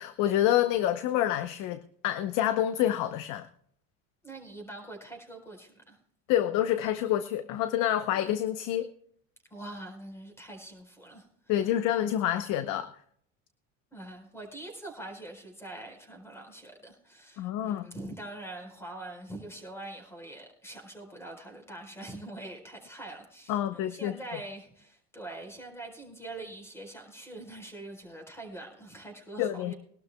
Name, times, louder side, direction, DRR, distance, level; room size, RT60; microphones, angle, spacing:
voice 1, 0.0-3.5 6.3-8.9 11.5-12.9 17.4-17.8 23.5-24.2 29.4-29.7, left 12 dB, 65° left, 11 dB, 0.9 m, -27 dB
voice 2, 4.2-6.0 8.1-8.2 9.5-11.3 13.9-29.7, right 2 dB, 10° left, 3 dB, 4.3 m, -44 dB
22.5 x 12.0 x 2.2 m, 0.63 s
cardioid pair, 120°, 33 cm